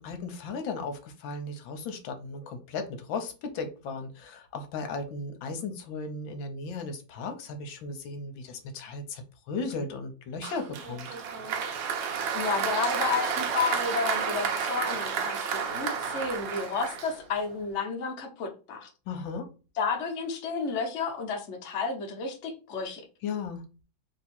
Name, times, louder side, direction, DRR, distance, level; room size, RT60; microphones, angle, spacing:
voice 1, 0.0-11.1 19.1-19.5 23.2-23.6, left 4 dB, 80° left, 6 dB, 1.5 m, -36 dB
Applause, 10.4-17.5, right 6 dB, 80° right, 1.5 m, -31 dB
voice 2, 12.3-18.9 19.8-23.0, left 5 dB, 45° left, 2 dB, 1.0 m, -31 dB
3.5 x 2.8 x 4.2 m, 0.33 s
omnidirectional pair, 2.1 m